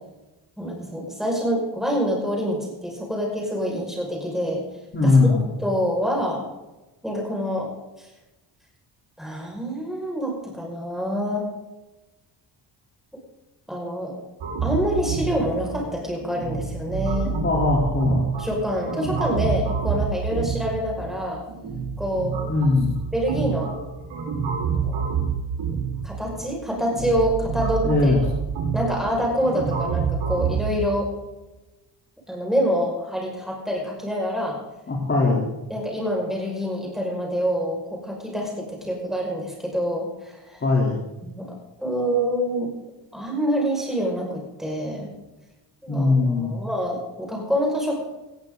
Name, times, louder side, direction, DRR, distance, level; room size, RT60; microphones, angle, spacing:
voice 1, 0.6-4.6 5.0-5.3 5.6-6.4 7.0-7.7 8.0-8.1 9.2-11.5 13.7-14.1 14.6-17.4 18.4-21.4 22.0-22.4 23.1-23.7 24.7-25.0 26.0-28.1 28.7-31.1 32.3-34.6 35.7-40.6 41.2-41.4 41.8-42.7 43.1-45.1 45.8-48.0, equal, ahead, -2 dB, 5.6 m, -26 dB
voice 2, 4.9-5.5 17.3-18.3 22.5-22.9 27.8-28.2 34.9-35.5 40.6-41.0 45.9-46.6, left 3 dB, 25° left, -4 dB, 3.5 m, -20 dB
sound 1, 14.4-30.6, right 6 dB, 70° right, 4.6 m, -28 dB
19.0 x 14.5 x 3.9 m, 1.0 s
cardioid pair, 165°, 44 cm